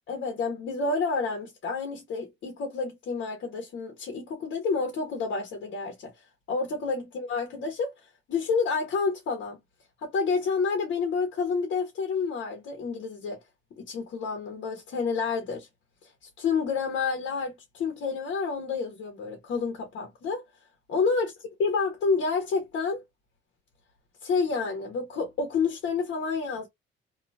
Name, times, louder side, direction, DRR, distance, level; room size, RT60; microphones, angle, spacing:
voice 1, 0.1-6.1 6.5-7.9 8.3-9.6 10.0-13.4 13.8-15.7 16.4-20.4 20.9-21.3 21.6-23.0 24.2-26.7, left 4 dB, 75° left, 1.2 m, -29 dB
2.7 x 2.6 x 2.2 m
cardioid pair, 90°, 20 cm